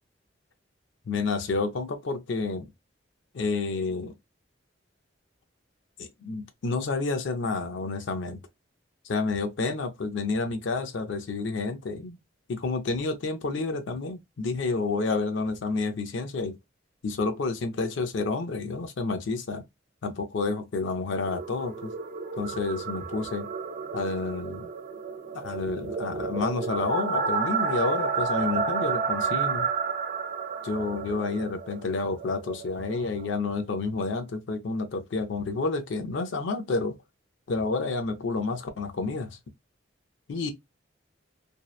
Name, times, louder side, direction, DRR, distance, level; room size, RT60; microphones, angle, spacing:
voice 1, 1.1-2.7 3.3-4.1 6.0-8.4 9.0-12.2 12.5-16.6 17.0-19.6 20.0-21.9 22.4-23.5 23.9-24.7 25.3-29.7 30.6-37.0 37.5-39.4 40.3-40.5, left 3 dB, 70° left, 0.4 m, -29 dB
sound 1, 21.2-33.3, right 5 dB, 40° right, 0.3 m, -31 dB
2.6 x 2.1 x 2.3 m
head